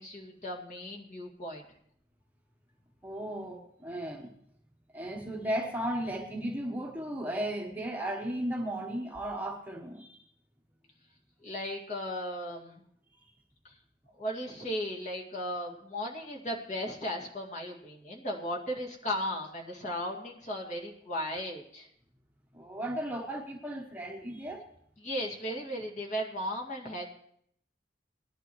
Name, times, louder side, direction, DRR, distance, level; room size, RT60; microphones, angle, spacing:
voice 1, 0.0-1.6 11.4-12.8 14.2-21.9 25.0-27.0, equal, 40° left, -1 dB, 2.2 m, -36 dB
voice 2, 3.0-4.3 4.9-10.2 22.5-24.6, right 1 dB, 10° right, 0 dB, 1.1 m, -35 dB
19.5 x 11.0 x 3.1 m, 0.68 s
head